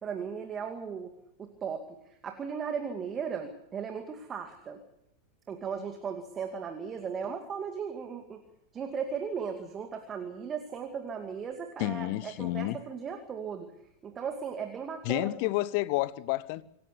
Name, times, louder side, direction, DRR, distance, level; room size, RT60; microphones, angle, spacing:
voice 1, 0.0-4.8 5.5-8.4 8.7-13.7 14.0-15.5, right 6 dB, 25° right, 2.3 m, -37 dB
voice 2, 11.8-12.8 15.0-16.6, left 17 dB, 45° left, 1.0 m, -30 dB
26.5 x 15.0 x 8.2 m
figure-of-eight pair, 90°, 0 cm